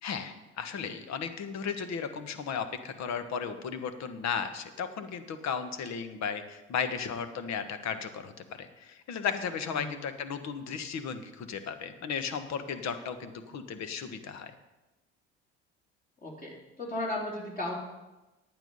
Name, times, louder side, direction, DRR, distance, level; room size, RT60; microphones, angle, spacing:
voice 1, 0.0-14.5, left 6 dB, 55° left, 9 dB, 1.4 m, -35 dB
voice 2, 9.7-10.0 16.2-17.7, left 1 dB, 25° left, -3 dB, 3.7 m, -35 dB
10.5 x 9.0 x 5.5 m, 1.1 s
hypercardioid pair, 65°, 33 cm